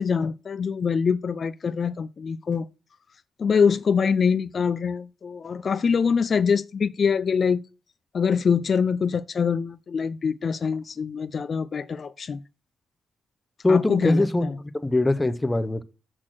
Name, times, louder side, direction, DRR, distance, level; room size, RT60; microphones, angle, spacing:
voice 1, 0.0-2.7 3.4-7.6 8.1-12.4 13.7-14.5, left 6 dB, 50° left, 0.3 m, -24 dB
voice 2, 13.6-14.5 14.7-15.8, left 2 dB, 15° left, 0.7 m, -22 dB
6.3 x 5.9 x 6.0 m
cardioid pair, 85°, 0 cm